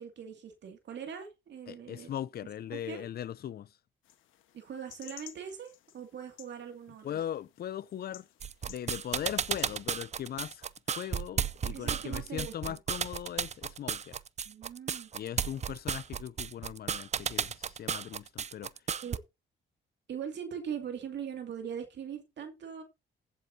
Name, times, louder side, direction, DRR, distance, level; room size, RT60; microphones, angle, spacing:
voice 1, 0.0-2.1 2.7-3.0 4.5-7.2 11.7-12.8 14.5-15.1 19.0-19.2 20.1-22.8, right 8 dB, 60° right, 2.4 m, -41 dB
voice 2, 1.7-3.7 7.0-8.3 8.6-10.7 10.9-14.2 15.1-18.7, left 10 dB, 50° left, 0.5 m, -39 dB
sound 1, 4.0-9.7, left 13 dB, 90° left, 1.3 m, -55 dB
sound 2, 8.4-19.2, right 7 dB, 35° right, 0.5 m, -33 dB
15.5 x 8.0 x 2.8 m
cardioid pair, 90°, 20 cm